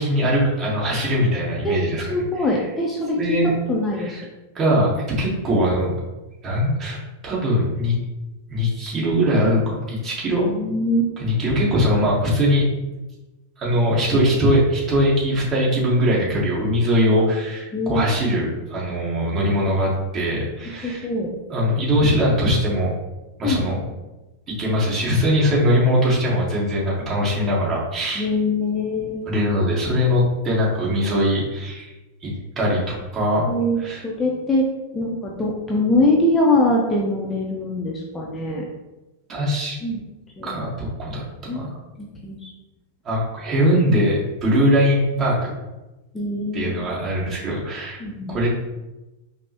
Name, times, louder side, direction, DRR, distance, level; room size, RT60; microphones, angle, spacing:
voice 1, 0.0-2.0 2.4-2.5 3.2-3.6 4.0-4.2 4.5-5.9 6.4-8.0 8.5-10.5 11.2-12.7 13.6-21.1 21.5-22.9 23.4-23.8 24.5-28.3 29.2-31.9 32.2-33.5 33.8-34.0 39.3-39.8 40.4-41.8 43.0-45.4 46.5-48.0 48.3-48.5, equal, 30° right, -5 dB, 1.5 m, -21 dB
voice 2, 2.1-3.4 3.7-4.2 10.4-11.1 17.7-18.0 20.8-21.3 23.4-23.8 28.2-29.2 33.4-34.7 34.9-38.6 39.8-40.0 40.4-40.5 41.5-41.7 42.2-42.5 46.1-46.8 48.0-48.3, left 1 dB, 15° left, -2 dB, 0.6 m, -22 dB
5.2 x 2.1 x 2.9 m, 1.1 s
hypercardioid pair, 100°, 0 cm